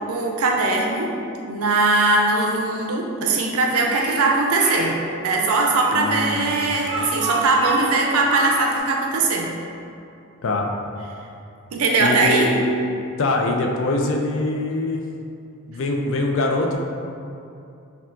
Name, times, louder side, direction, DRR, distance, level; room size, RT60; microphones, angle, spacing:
voice 1, 0.1-1.1 1.5-4.9 5.2-9.5 11.7-12.5, right 3 dB, 85° right, 0 dB, 0.5 m, -20 dB
Speech, 3.8-4.9 5.8-8.8, right 3 dB, 25° right, 0.7 m, -29 dB
voice 2, 5.9-6.6 10.4-10.7 12.0-12.6 13.2-15.0 15.7-16.8, left 2 dB, 65° left, 2 dB, 0.4 m, -23 dB
5.4 x 2.3 x 2.5 m, 2.6 s
head